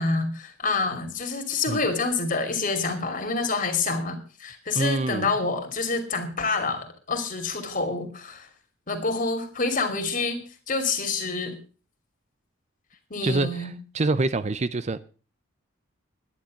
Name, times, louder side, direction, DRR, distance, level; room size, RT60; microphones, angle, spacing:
voice 1, 0.0-8.5 8.9-10.4 10.7-11.6 13.1-13.7, left 3 dB, 40° left, 2.8 m, -27 dB
voice 2, 4.8-5.3 13.2-15.0, right 2 dB, 35° right, 0.5 m, -26 dB
11.5 x 10.0 x 6.4 m
head